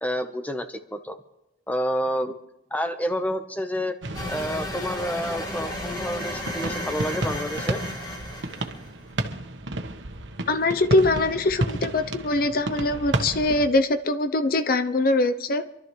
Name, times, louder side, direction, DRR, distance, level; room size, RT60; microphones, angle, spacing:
voice 1, 0.0-1.2 1.7-2.4 2.7-4.0 4.3-7.8, equal, 10° left, 7 dB, 1.0 m, -29 dB
sound 1, 4.0-13.7, right 2 dB, 85° right, 1.2 m, -32 dB
sound 2, 4.1-8.9, left 1 dB, 25° left, 2.6 m, -33 dB
voice 2, 10.5-15.8, left 2 dB, 50° left, 9 dB, 0.7 m, -23 dB
26.5 x 12.5 x 3.2 m, 0.87 s
head